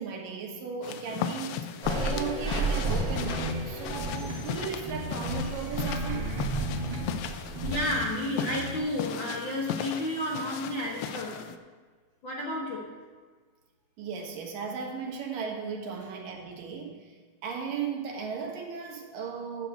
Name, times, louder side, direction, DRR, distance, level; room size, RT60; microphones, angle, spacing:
voice 1, 0.0-1.7 2.0-6.3 14.0-17.1 17.4-19.7, right 6 dB, 75° right, 1 dB, 3.1 m, -36 dB
sound 1, 0.8-11.6, left 9 dB, 90° left, 2.4 m, -37 dB
sound 2, 1.8-7.7, right 2 dB, 20° right, 4.4 m, -33 dB
sound 3, 2.8-4.5 4.8-7.3 7.5-8.2 8.4-8.8, right 1 dB, 45° right, 1.9 m, -35 dB
voice 2, 7.6-11.5 12.2-12.9, left 1 dB, 60° left, -3 dB, 1.2 m, -31 dB
10.0 x 7.0 x 8.0 m, 1.5 s
omnidirectional pair, 4.0 m